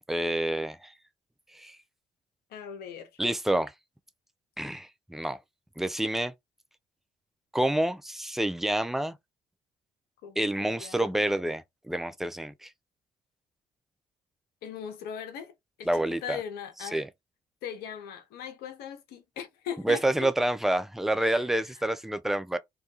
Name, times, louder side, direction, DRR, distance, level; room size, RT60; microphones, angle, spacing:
voice 1, 0.1-0.9 1.5-1.8 3.2-3.7 4.6-5.4 5.8-6.3 7.5-9.2 10.4-12.7 15.9-16.4 16.9-17.1 19.8-22.6, right 1 dB, ahead, 0.4 m, -28 dB
voice 2, 2.5-3.1 10.2-11.3 14.6-15.5 15.8-17.0 17.6-20.3 21.2-21.5, left 8 dB, 70° left, 0.7 m, -39 dB
2.3 x 2.1 x 2.8 m
hypercardioid pair, 50°, 17 cm